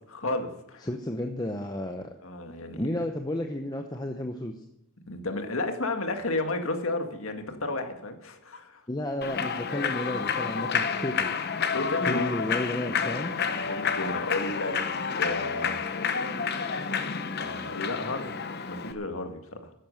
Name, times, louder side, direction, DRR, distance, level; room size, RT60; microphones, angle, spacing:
voice 1, 0.1-0.9 2.2-2.9 5.1-8.8 11.7-12.3 13.6-14.8 15.2-15.9 17.4-18.4 18.6-19.6, left 2 dB, 65° left, 6 dB, 1.9 m, -32 dB
voice 2, 0.8-2.1 2.7-4.6 8.9-11.3 12.1-13.3, left 1 dB, 20° left, 4 dB, 0.8 m, -32 dB
Human voice / Clapping / Cheering, 9.2-18.9, left 6 dB, 45° left, 0.9 m, -30 dB
13.5 x 10.5 x 6.6 m, 0.79 s
head